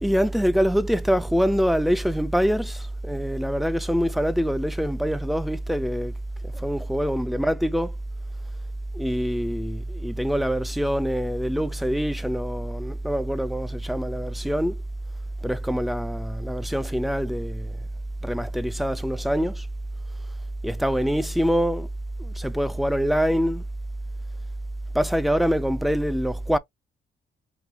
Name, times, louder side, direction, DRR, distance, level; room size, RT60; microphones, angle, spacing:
voice 1, 0.0-6.1 6.4-7.9 8.9-14.8 15.4-17.8 18.2-19.7 20.6-21.9 22.2-23.6 24.9-26.6, equal, ahead, 0.5 m, -24 dB
4.9 x 2.4 x 2.9 m
cardioid pair, 90°, 20 cm